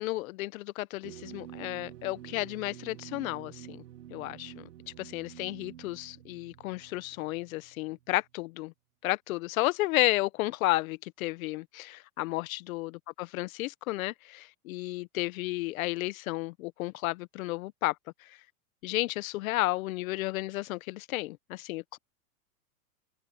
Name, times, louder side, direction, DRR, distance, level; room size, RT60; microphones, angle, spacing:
voice 1, 0.0-3.8 4.1-4.6 5.0-8.7 9.0-12.9 13.2-17.9 18.8-22.0, left 19 dB, 60° left, 1.1 m, -32 dB
sound 1, 1.0-8.3, right 12 dB, 85° right, 2.6 m, -48 dB
supercardioid pair, 140°, 47 cm